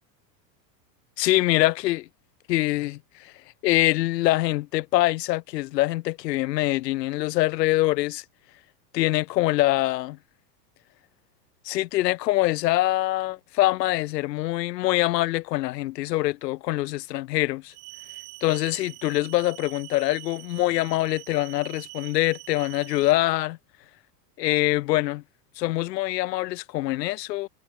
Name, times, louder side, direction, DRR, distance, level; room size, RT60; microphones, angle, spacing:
voice 1, 1.2-2.1 2.5-3.3 3.6-8.2 8.9-10.2 11.6-17.7 18.4-23.6 24.4-25.2 25.6-27.5, left 17 dB, 75° left, 4.5 m, -24 dB
sound 1, 17.7-23.1, right 27 dB, 55° right, 6.8 m, -44 dB
supercardioid pair, 120°, 50 cm